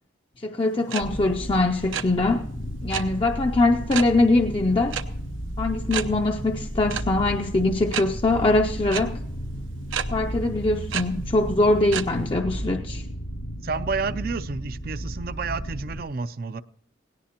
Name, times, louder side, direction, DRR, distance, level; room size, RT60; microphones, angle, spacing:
voice 1, 0.4-2.4 2.8-5.0 5.6-9.2 10.1-13.0, left 2 dB, 25° left, 3 dB, 0.5 m, -22 dB
sound 1, 0.9-1.0 1.3-2.0 2.9-3.0 3.9-4.1 4.9-5.0 5.4-5.5 5.9-6.0 6.9-7.0 7.9-8.0 8.9-9.0 9.9-10.0 10.9-11.0 11.9-12.0, right 8 dB, 90° right, 0.8 m, -28 dB
sound 2, 1.0-16.0, equal, 80° left, 2.1 m, -33 dB
voice 2, 13.6-16.6, right 4 dB, 50° right, 14 dB, 0.4 m, -30 dB
18.0 x 17.5 x 2.9 m, 0.73 s
head